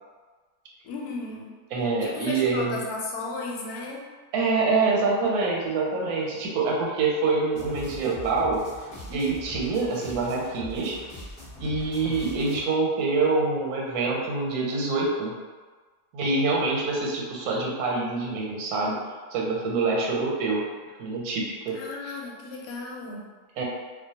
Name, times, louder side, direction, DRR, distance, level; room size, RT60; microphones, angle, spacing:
voice 1, 0.8-1.5 2.0-4.0 21.7-23.3, left 3 dB, 90° left, -2 dB, 1.1 m, -35 dB
voice 2, 1.7-2.8 4.3-8.6 9.1-11.0 11.6-15.3 16.1-19.0 19.3-20.6 21.0-22.2 23.6-23.7, right 3 dB, 90° right, -2 dB, 1.1 m, -26 dB
sound 1, 7.5-12.6, left 1 dB, 30° left, 0.7 m, -42 dB
2.3 x 2.2 x 2.7 m, 1.4 s
omnidirectional pair, 1.5 m